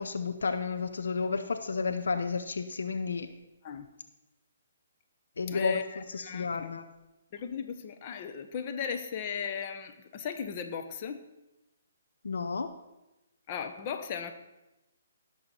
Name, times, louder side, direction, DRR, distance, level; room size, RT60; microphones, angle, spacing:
voice 1, 0.0-3.3 5.4-6.8 12.2-12.7, left 4 dB, 70° left, 8 dB, 0.8 m, -32 dB
voice 2, 5.5-6.7 7.3-11.2 13.5-14.3, left 7 dB, 35° left, 7 dB, 1.0 m, -36 dB
17.0 x 6.7 x 4.3 m, 0.99 s
figure-of-eight pair, 135°, 0 cm